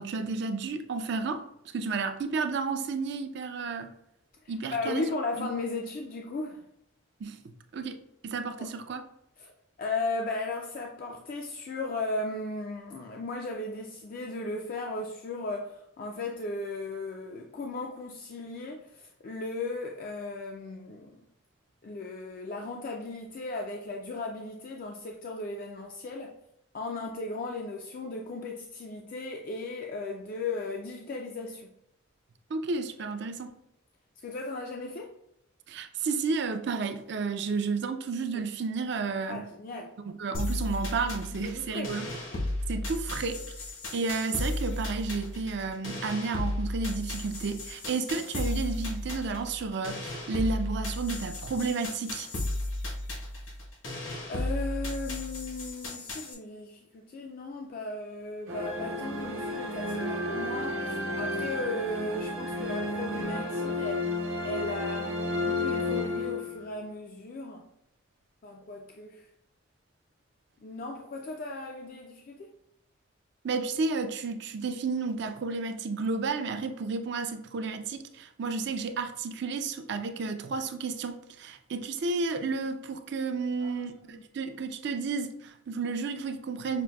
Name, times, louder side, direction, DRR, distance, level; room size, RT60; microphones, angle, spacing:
voice 1, 0.0-1.4 1.7-3.9 4.5-5.0 5.4-5.5 7.2-9.0 32.5-33.5 35.7-39.4 40.1-42.1 42.7-43.4 43.9-52.3 73.4-86.8, right 4 dB, 55° right, 0.4 m, -32 dB
voice 2, 4.7-6.7 8.6-8.7 9.4-9.5 9.8-21.2 21.8-26.4 26.7-31.7 34.2-35.1 38.3-38.5 39.3-39.9 41.3-41.9 54.3-64.1 64.4-67.7 68.4-69.3 70.6-72.5 83.6-84.1, left 2 dB, 45° left, 0.3 m, -36 dB
sound 1, 40.3-56.3, left 1 dB, 75° left, 1.1 m, -34 dB
sound 2, 58.5-66.8, left 2 dB, 80° right, 0.9 m, -32 dB
5.9 x 2.5 x 2.2 m
head